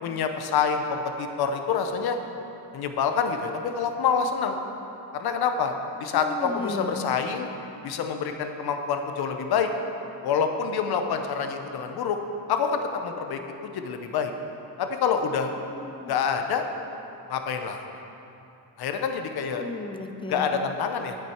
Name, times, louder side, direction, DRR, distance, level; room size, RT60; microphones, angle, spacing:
voice 1, 0.0-2.2 2.7-4.6 5.1-5.7 6.0-7.5 7.8-9.7 10.2-12.2 12.5-14.3 14.8-15.5 16.1-16.6 17.3-17.8 18.8-19.6 20.3-21.2, left 6 dB, 55° left, 6 dB, 0.9 m, -27 dB
voice 2, 6.1-7.0 15.7-16.1 19.5-20.5, left 3 dB, 10° left, 7 dB, 0.5 m, -35 dB
9.8 x 8.8 x 4.5 m, 2.9 s
cardioid pair, 115°, 45 cm